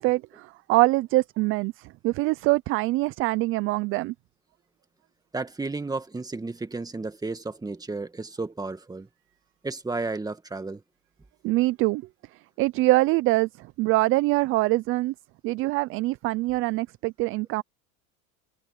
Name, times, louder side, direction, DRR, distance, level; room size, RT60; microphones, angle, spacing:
voice 1, 0.0-4.1 11.4-12.1 12.6-15.1 15.4-17.6, right 20 dB, 30° right, 0.4 m, -24 dB
voice 2, 5.3-9.1 9.6-10.8, right 3 dB, 10° right, 1.8 m, -33 dB
supercardioid pair, 125°, 43 cm